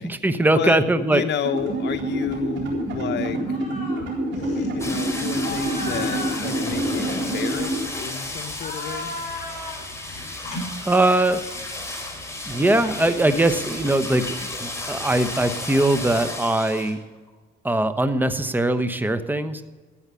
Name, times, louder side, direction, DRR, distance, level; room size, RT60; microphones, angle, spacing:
voice 1, 0.0-1.2 10.9-11.4 12.5-14.3 14.6-17.0 17.6-19.6, right 1 dB, 10° right, 10 dB, 1.1 m, -21 dB
voice 2, 0.5-3.6 4.5-9.1, left 8 dB, 60° left, 6 dB, 0.9 m, -31 dB
sound 1, 1.4-7.8, right 1 dB, 70° right, 4.1 m, -27 dB
sound 2, 3.4-4.1 4.3-4.7 5.3-8.1 8.5-9.9 10.4-11.4 12.5-14.3, left 2 dB, 40° left, 5.7 m, -36 dB
sound 3, 4.8-17.0 17.3-17.4, left 2 dB, 15° left, 3.9 m, -33 dB
13.5 x 8.9 x 6.9 m, 1.3 s
cardioid pair, 90°, 20 cm